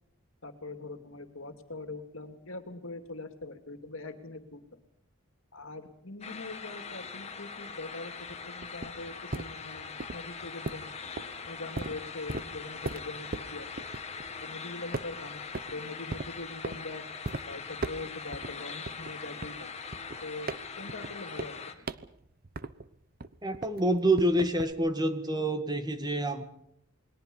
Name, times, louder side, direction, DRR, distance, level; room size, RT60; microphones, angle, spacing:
voice 1, 0.4-4.6 5.5-8.2 8.4-11.0 11.5-13.7 14.4-15.4 15.7-17.0 17.4-19.7 20.2-20.5 20.8-21.9, left 2 dB, 65° left, 8 dB, 2.7 m, -42 dB
sound 1, 6.2-21.7, left 5 dB, 30° left, 2.2 m, -42 dB
sound 2, 8.2-14.6 14.9-15.8 16.1-16.8 17.2-17.4 17.8-18.5 18.9-22.9 23.2-24.7, right 2 dB, 45° right, 0.9 m, -38 dB
voice 2, 23.4-26.4, right 1 dB, 20° right, 8 dB, 1.9 m, -27 dB
28.5 x 22.0 x 5.6 m, 0.73 s
head